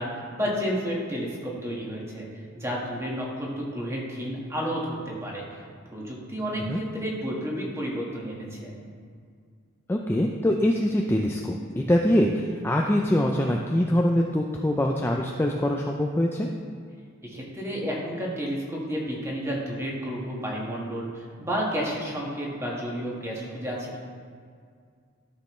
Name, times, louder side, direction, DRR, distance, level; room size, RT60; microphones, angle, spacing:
voice 1, 0.0-2.3 2.5-5.0 5.2-5.6 5.9-8.8 17.2-24.0, equal, 15° right, -4 dB, 1.6 m, -31 dB
voice 2, 9.9-16.5, left 1 dB, 10° left, 0 dB, 0.4 m, -24 dB
13.0 x 6.4 x 3.2 m, 2.1 s
head